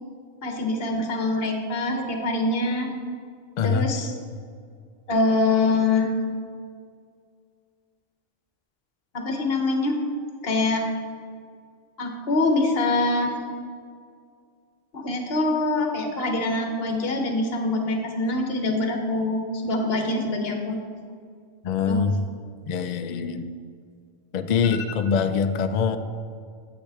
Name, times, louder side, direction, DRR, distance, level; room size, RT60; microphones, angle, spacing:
voice 1, 0.4-2.9 3.6-4.1 5.1-6.1 9.1-10.0 10.4-10.8 12.0-13.3 14.9-20.8 21.9-22.0, left 2 dB, 55° left, 3 dB, 1.2 m, -24 dB
voice 2, 3.6-3.9 21.6-22.2 22.7-23.5 24.3-26.0, left 6 dB, 90° left, 9 dB, 0.3 m, -24 dB
8.7 x 8.4 x 3.4 m, 2.1 s
omnidirectional pair, 1.3 m